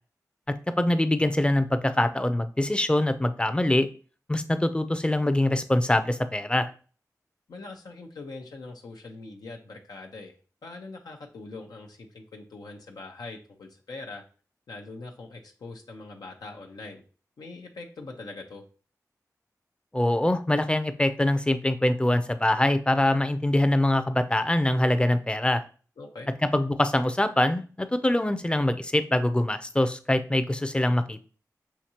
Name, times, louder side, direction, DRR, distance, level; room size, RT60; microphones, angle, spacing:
voice 1, 0.8-3.9 4.3-6.7 19.9-25.6 26.4-31.2, left 1 dB, 15° left, 10 dB, 0.5 m, -24 dB
voice 2, 7.5-10.3 10.6-14.2 14.7-17.0 17.4-18.6 26.0-26.3, left 3 dB, 90° left, 1 dB, 0.7 m, -42 dB
5.8 x 2.8 x 2.8 m, 0.38 s
cardioid pair, 45°, 7 cm